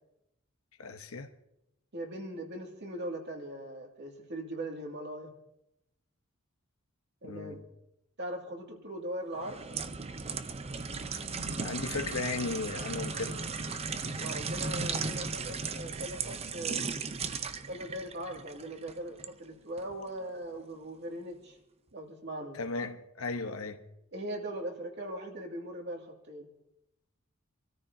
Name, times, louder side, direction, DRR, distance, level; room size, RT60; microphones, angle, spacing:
voice 1, 0.8-1.3 7.2-7.6 11.6-13.4 22.6-23.8, left 3 dB, 75° left, 1.0 m, -36 dB
voice 2, 1.9-5.3 7.2-7.6 8.2-9.6 14.1-16.8 17.7-21.6 21.9-22.6 24.1-26.5, right 1 dB, 55° right, 2.3 m, -40 dB
sound 1, 9.4-19.3 19.8-20.0, right 4 dB, 30° right, 0.6 m, -36 dB
27.0 x 13.5 x 2.8 m
head